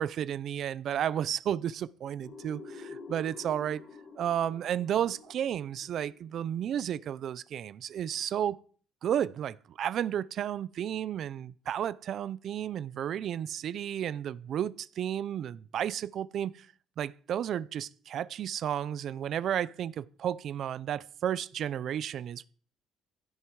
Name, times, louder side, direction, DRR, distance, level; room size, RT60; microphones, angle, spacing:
voice 1, 0.0-3.8 4.2-8.6 9.0-16.7 17.0-22.5, right 10 dB, 45° right, 0.7 m, -32 dB
sound 1, 2.2-6.9, left 4 dB, 40° left, 3.7 m, -49 dB
16.5 x 11.5 x 4.8 m
cardioid pair, 180°, 0 cm